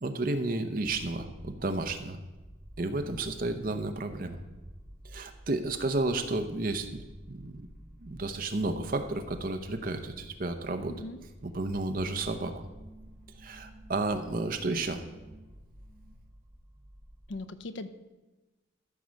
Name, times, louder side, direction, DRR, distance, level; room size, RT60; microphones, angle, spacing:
voice 1, 0.0-2.2 2.8-4.4 5.0-7.0 7.3-7.7 8.0-10.9 11.4-12.7 13.4-15.0, right 2 dB, 45° right, 7 dB, 0.8 m, -32 dB
sound 1, 2.3-17.4, equal, 10° right, 1.2 m, -52 dB
voice 2, 10.9-11.2 17.3-17.9, left 2 dB, 65° left, 11 dB, 0.6 m, -39 dB
sound 2, 11.5-16.3, right 2 dB, 45° left, 2.2 m, -55 dB
13.5 x 4.7 x 6.4 m, 1.1 s
head